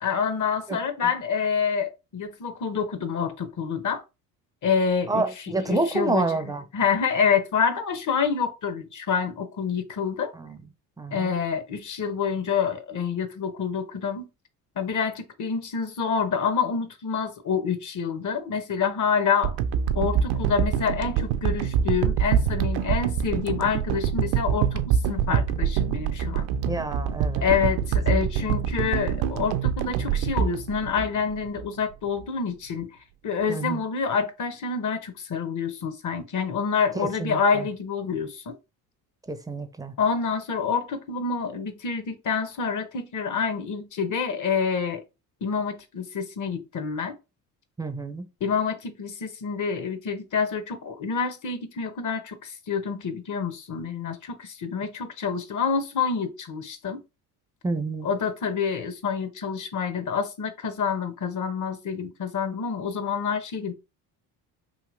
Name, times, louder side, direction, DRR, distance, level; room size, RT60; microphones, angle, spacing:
voice 1, 0.0-4.0 4.6-5.2 5.7-6.2 6.7-10.3 11.1-14.3 14.8-19.6 19.9-26.5 27.4-32.9 33.2-38.5 40.0-45.0 45.4-47.1 48.4-57.0 58.0-63.7, left 6 dB, 40° left, 0.8 m, -27 dB
voice 2, 0.7-1.1 5.1-6.6 10.3-10.6 11.0-11.3 26.7-27.5 28.4-28.5 33.5-33.8 37.0-37.7 39.3-39.9 47.8-48.3 57.6-58.1, right 3 dB, 10° right, 0.5 m, -29 dB
sound 1, 19.4-31.7 32.2-32.3, right 8 dB, 55° right, 0.5 m, -25 dB
3.0 x 2.7 x 2.5 m
hypercardioid pair, 60°, 46 cm